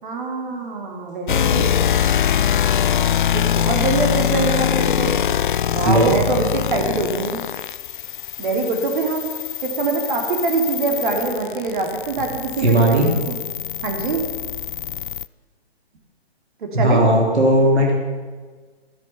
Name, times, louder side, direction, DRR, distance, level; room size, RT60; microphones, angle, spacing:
voice 1, 0.0-1.7 3.3-5.2 5.7-7.4 8.4-9.3 9.6-13.4 13.8-14.2 16.6-17.1, right 3 dB, 50° right, 2 dB, 3.1 m, -24 dB
sound 1, 1.3-15.3, left 9 dB, 50° left, 0.4 m, -23 dB
voice 2, 12.6-13.1 16.7-17.9, right 1 dB, 90° right, -1 dB, 3.4 m, -16 dB
15.0 x 13.5 x 5.9 m, 1.4 s
figure-of-eight pair, 140°, 32 cm